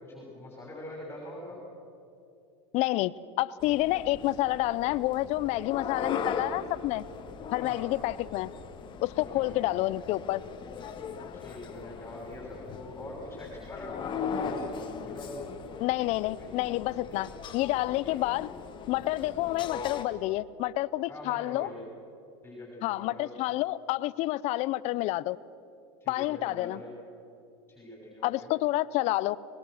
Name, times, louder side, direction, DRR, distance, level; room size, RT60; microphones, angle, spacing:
voice 1, 0.0-1.6 7.6-7.9 9.1-9.6 11.3-15.5 16.4-16.5 17.1-17.2 18.0-18.2 19.3-19.4 21.1-21.8 22.4-23.3 26.0-26.9 27.7-28.5, left 1 dB, 15° left, -2 dB, 6.3 m, -43 dB
voice 2, 2.7-7.0 7.5-8.5 9.0-10.4 15.8-18.5 18.9-21.7 22.8-25.4 26.1-26.8 28.2-29.4, left 17 dB, 50° left, 19 dB, 0.7 m, -29 dB
sound 1, 3.6-20.1, left 6 dB, 35° left, 1.7 m, -39 dB
25.0 x 21.0 x 6.5 m, 2.6 s
supercardioid pair, 110°, 15 cm